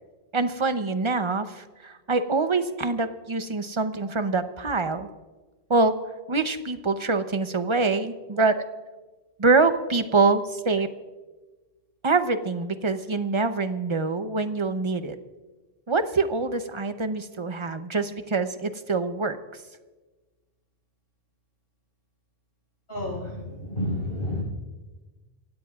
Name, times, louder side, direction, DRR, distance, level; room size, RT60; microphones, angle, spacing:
voice 1, 0.3-5.1 5.7-6.0 6.3-8.7 9.4-10.9 12.0-15.2 15.9-19.4, right 3 dB, 30° right, 9 dB, 0.8 m, -25 dB
voice 2, 22.9-24.4, left 1 dB, 70° left, -2 dB, 6.2 m, -30 dB
25.5 x 16.5 x 2.4 m, 1.2 s
omnidirectional pair, 1.0 m